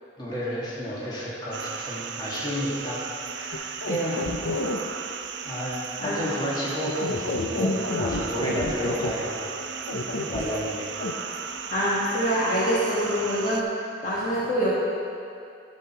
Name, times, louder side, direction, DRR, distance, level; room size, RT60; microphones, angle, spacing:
voice 1, 0.2-4.3 5.4-9.5 9.8-10.0 10.3-10.9, equal, 25° left, -7 dB, 2.0 m, -31 dB
sound 1, 1.5-13.6, right 6 dB, 65° right, 0.5 m, -36 dB
sound 2, 3.5-4.8 6.8-9.1 9.9-10.4 11.0-11.1, left 2 dB, 85° left, 0.7 m, -29 dB
voice 2, 11.7-13.6 14.0-14.7, equal, 40° left, -8 dB, 1.6 m, -25 dB
12.5 x 6.3 x 4.5 m, 2.4 s
head